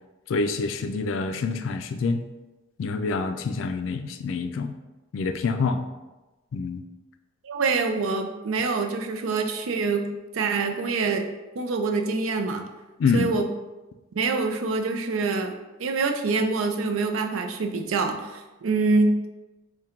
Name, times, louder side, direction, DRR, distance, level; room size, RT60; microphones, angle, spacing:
voice 1, 0.3-2.2 2.8-4.7 5.1-5.9 6.5-6.8 13.0-13.3, left 4 dB, 75° left, 8 dB, 0.3 m, -26 dB
voice 2, 7.4-10.1 10.3-11.2 11.6-12.7 13.1-13.5 14.2-15.5 15.8-19.3, right 3 dB, 85° right, 4 dB, 0.4 m, -25 dB
3.6 x 2.2 x 4.3 m, 1.1 s
head